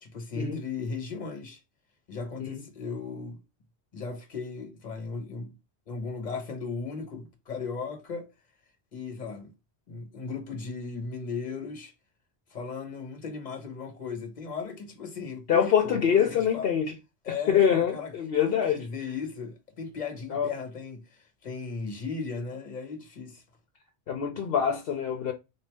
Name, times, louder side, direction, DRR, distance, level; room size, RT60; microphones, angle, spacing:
voice 1, 0.0-1.6 2.1-3.4 3.9-5.5 5.9-8.3 8.9-9.5 9.9-11.9 12.5-16.7 17.2-18.1 18.7-23.4, left 5 dB, 45° left, 1.2 m, -36 dB
voice 2, 15.5-17.0 17.3-18.9 20.3-20.5 24.1-25.3, left 8 dB, 70° left, 0.9 m, -25 dB
4.2 x 2.7 x 3.3 m
omnidirectional pair, 1.1 m